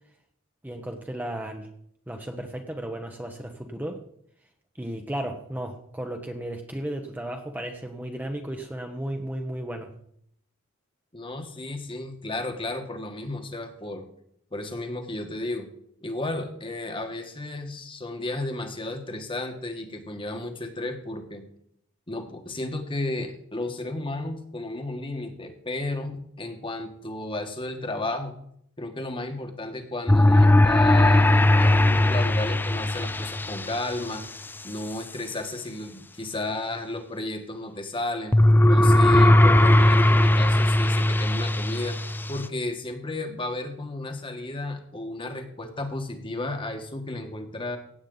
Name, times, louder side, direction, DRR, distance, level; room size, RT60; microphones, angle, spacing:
voice 1, 0.6-1.7 2.1-4.0 4.8-9.9, right 1 dB, 10° right, 3 dB, 0.9 m, -34 dB
voice 2, 11.1-14.0 14.5-15.7 16.0-21.4 22.1-28.4 28.8-34.2 34.6-38.4 38.7-42.0 42.3-47.8, left 2 dB, 25° left, 5 dB, 1.5 m, -33 dB
sound 1, 30.1-33.8 38.3-42.5, left 1 dB, 10° left, 0.3 m, -18 dB
16.5 x 8.5 x 3.9 m, 0.68 s
head